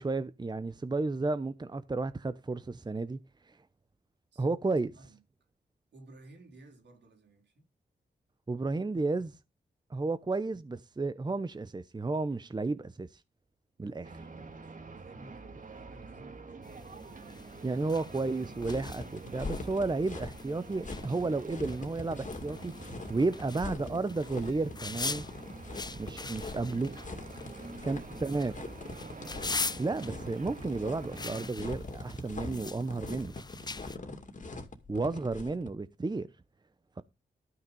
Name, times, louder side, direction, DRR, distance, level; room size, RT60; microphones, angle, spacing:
voice 1, 0.0-3.2 3.5-3.6 4.4-4.9 8.5-9.3 9.9-13.2 13.8-14.1 17.6-22.7 23.1-25.3 25.9-26.9 27.8-28.5 29.8-33.3 34.9-36.3, right 3 dB, 25° right, 0.8 m, -32 dB
voice 2, 4.7-5.2 5.9-7.7 13.8-16.6 27.5-28.4 33.5-34.0, right 2 dB, 80° right, 4.0 m, -56 dB
sound 1, 14.0-31.5, right 4 dB, 50° right, 2.0 m, -47 dB
sound 2, 16.6-34.0, left 3 dB, 25° left, 0.5 m, -43 dB
sound 3, 18.6-35.7, left 3 dB, 45° left, 2.4 m, -43 dB
12.5 x 5.8 x 5.3 m
cardioid pair, 55°, 18 cm